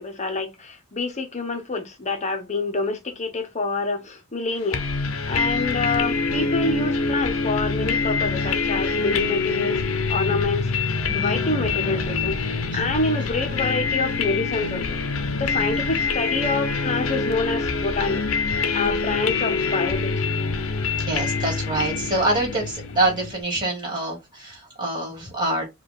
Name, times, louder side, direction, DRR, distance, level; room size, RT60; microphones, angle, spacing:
voice 1, 0.0-9.8 10.1-10.7 11.1-12.4 12.7-15.0 15.4-18.2 18.7-20.2, left 3 dB, 30° left, 0.8 m, -27 dB
sound 1, 4.7-23.4, left 4 dB, 70° left, 0.6 m, -25 dB
voice 2, 5.4-5.7 11.1-11.4 12.7-12.8 15.6-15.8 21.0-25.6, right 2 dB, 20° right, 2.2 m, -26 dB
4.7 x 2.3 x 3.4 m
head